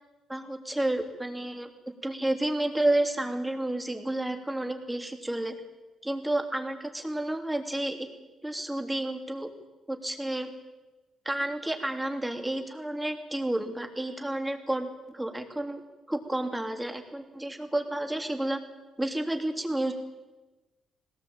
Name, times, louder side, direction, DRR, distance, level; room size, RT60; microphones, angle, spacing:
voice 1, 0.3-1.7 2.0-5.5 6.0-8.1 8.4-9.5 9.9-10.5 11.2-15.8 16.1-18.6 19.0-19.9, right 1 dB, 10° right, 4 dB, 3.4 m, -30 dB
20.5 x 18.5 x 8.9 m, 1.2 s
cardioid pair, 90°, 0 cm